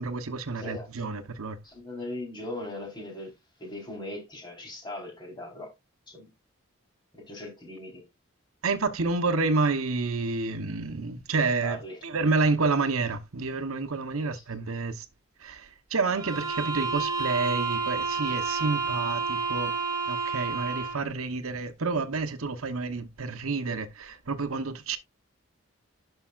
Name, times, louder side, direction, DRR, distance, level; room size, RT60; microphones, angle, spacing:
voice 1, 0.0-1.6 8.6-15.1 15.4-19.8 20.1-25.0, right 3 dB, 80° right, 1.0 m, -29 dB
voice 2, 0.6-0.9 1.6-5.7 6.1-6.3 7.1-8.0 11.6-12.0 14.2-14.3, left 1 dB, 20° left, 4.0 m, -39 dB
sound 1, 16.1-21.1, right 5 dB, 20° right, 2.6 m, -30 dB
11.5 x 5.6 x 2.4 m
head